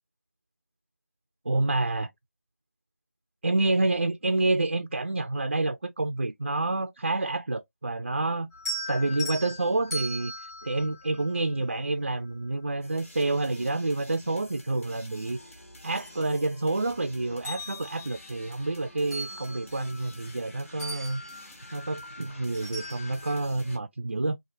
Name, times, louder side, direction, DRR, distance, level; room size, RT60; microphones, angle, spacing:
voice 1, 1.5-2.1 3.4-8.5 8.9-10.3 10.6-15.4 15.8-21.2 21.7-24.4, right 2 dB, 45° right, 0.3 m, -28 dB
sound 1, 8.5-11.9 13.5-13.6 14.1-15.3 15.7-16.9 17.3-20.5 20.8-23.5, equal, 10° left, 1.4 m, -40 dB
sound 2, 12.8-23.8, left 1 dB, 55° left, 2.4 m, -50 dB
4.4 x 2.5 x 2.5 m
figure-of-eight pair, 170°, 8 cm